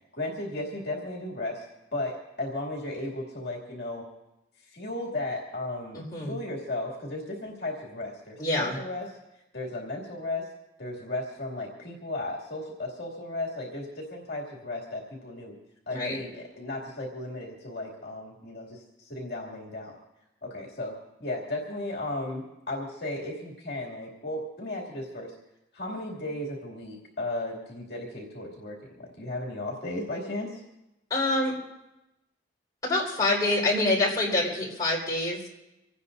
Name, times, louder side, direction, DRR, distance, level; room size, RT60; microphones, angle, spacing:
voice 1, 0.1-1.6 1.9-4.0 4.6-10.5 10.8-15.5 15.9-20.0 20.4-20.9 21.2-25.3 25.7-30.6, left 2 dB, 55° left, -3 dB, 2.6 m, -35 dB
voice 2, 5.9-6.4 8.4-8.8 15.9-16.2 31.1-31.5 32.8-35.5, left 2 dB, 20° left, -5 dB, 4.5 m, -26 dB
26.0 x 18.0 x 2.7 m, 0.95 s
head